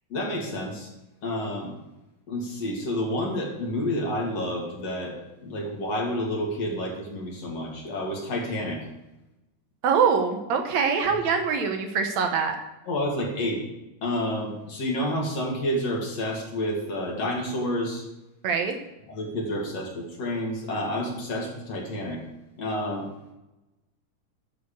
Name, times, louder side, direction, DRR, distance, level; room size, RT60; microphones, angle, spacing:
voice 1, 0.1-0.9 1.2-1.7 2.3-5.1 5.4-8.8 12.9-13.6 14.0-18.0 19.1-22.2 22.6-23.1, left 1 dB, 55° left, -1 dB, 3.4 m, -29 dB
voice 2, 9.8-12.6 18.4-18.8, right 6 dB, 70° right, 5 dB, 2.1 m, -24 dB
11.5 x 6.8 x 6.9 m, 0.98 s
omnidirectional pair, 3.6 m